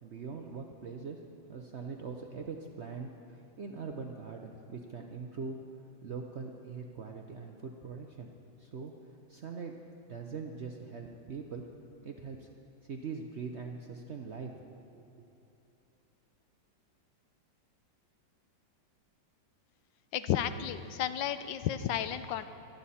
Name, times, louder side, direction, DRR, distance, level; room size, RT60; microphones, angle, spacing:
voice 1, 0.0-1.2 1.5-5.6 6.0-8.3 8.6-8.9 9.3-11.7 12.0-12.5 12.8-14.5 14.9-15.0, right 5 dB, 60° right, 2 dB, 0.7 m, -42 dB
voice 2, 20.1-22.5, left 10 dB, 85° left, 11 dB, 1.3 m, -32 dB
24.5 x 9.4 x 4.2 m, 3.0 s
omnidirectional pair, 2.0 m